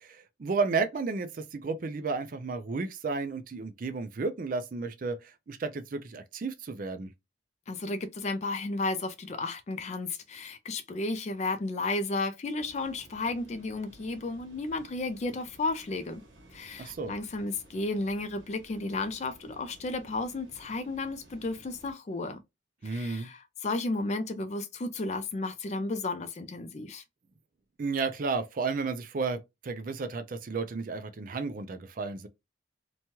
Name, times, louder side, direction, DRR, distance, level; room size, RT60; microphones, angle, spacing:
voice 1, 0.0-7.1 16.8-17.1 22.8-23.3 27.8-32.3, right 4 dB, 45° right, 0.4 m, -32 dB
voice 2, 7.7-16.2 16.5-22.4 22.8-27.0, left 2 dB, 35° left, 0.3 m, -33 dB
sound 1, 12.6-21.9, right 1 dB, 70° right, 1.2 m, -56 dB
3.0 x 2.2 x 2.7 m
head